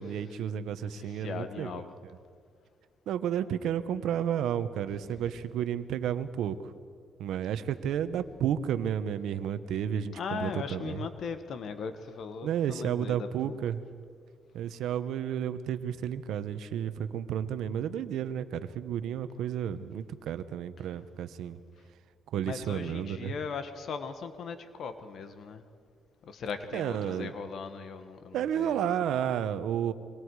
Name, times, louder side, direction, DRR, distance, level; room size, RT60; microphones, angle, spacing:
voice 1, 0.0-1.8 3.1-6.6 7.2-11.0 12.4-13.8 14.5-21.6 22.3-23.3 26.7-27.3 28.3-29.9, right 9 dB, 80° right, 12 dB, 1.0 m, -32 dB
voice 2, 0.8-1.9 5.0-5.3 10.1-13.6 22.4-25.6 26.3-28.9, left 5 dB, 60° left, 9 dB, 1.4 m, -39 dB
27.0 x 24.5 x 4.9 m, 2.1 s
cardioid pair, 90°, 0 cm